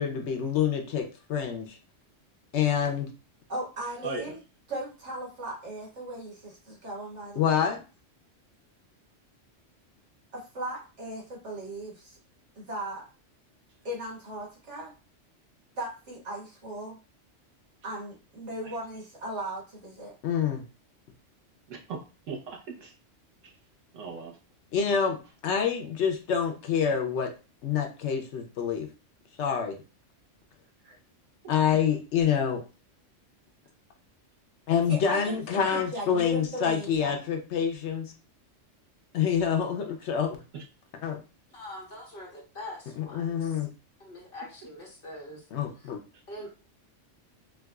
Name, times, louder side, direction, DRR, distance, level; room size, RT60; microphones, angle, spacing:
voice 1, 0.0-1.8 2.5-3.1 7.4-7.8 20.2-20.6 24.7-27.3 27.6-28.9 29.4-29.8 31.5-32.6 34.7-38.1 39.1-40.4 41.0-41.2 43.0-43.7 45.5-46.0, left 7 dB, 70° left, 4 dB, 0.9 m, -27 dB
voice 2, 3.5-4.4 4.7-7.6 10.3-12.2 12.6-13.0 13.8-14.9 15.8-17.0 17.8-20.1 30.8-31.0 34.9-37.2, right 1 dB, 65° right, -4 dB, 1.7 m, -37 dB
voice 3, 4.0-4.4 18.6-18.8 21.7-22.0 22.3-22.9 23.4-23.5 23.9-24.4 40.5-40.6 46.1-46.2, right 4 dB, 80° right, 0 dB, 1.2 m, -38 dB
voice 4, 41.5-43.6 44.0-45.4 45.7-45.9 46.3-46.5, left 1 dB, 50° left, -4 dB, 1.5 m, -43 dB
4.6 x 2.3 x 2.3 m, 0.33 s
omnidirectional pair, 1.3 m